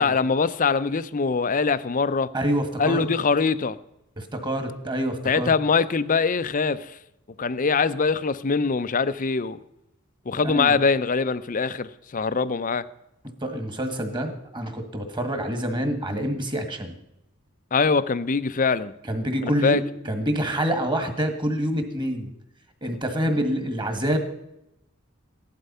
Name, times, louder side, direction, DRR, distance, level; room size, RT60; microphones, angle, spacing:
voice 1, 0.0-2.3 2.8-3.8 5.2-6.9 7.4-9.6 10.3-12.8 17.7-18.9 19.4-19.8, left 4 dB, 40° left, 0.6 m, -23 dB
voice 2, 2.3-3.1 4.2-5.5 10.4-10.8 13.4-16.9 19.1-22.3 22.8-24.2, equal, 20° right, 1.8 m, -27 dB
15.5 x 11.5 x 5.6 m
head